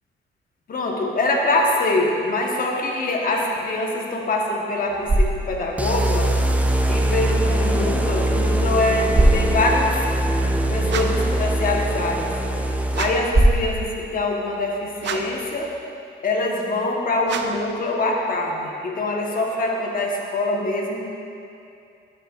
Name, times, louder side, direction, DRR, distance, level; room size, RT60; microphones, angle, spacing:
voice 1, 0.7-6.3 6.9-10.0 10.7-12.3 13.0-15.7 16.2-21.0, left 2 dB, 45° left, -1 dB, 1.3 m, -24 dB
sound 1, 4.7-15.8, right 1 dB, 25° right, 1.2 m, -26 dB
sound 2, 5.8-13.4, right 1 dB, 5° right, 0.5 m, -22 dB
sound 3, 10.9-11.3 12.9-13.4 15.0-15.5 17.2-17.7, right 6 dB, 65° right, 0.5 m, -30 dB
12.0 x 6.6 x 2.5 m, 2.6 s
cardioid pair, 90°, 20 cm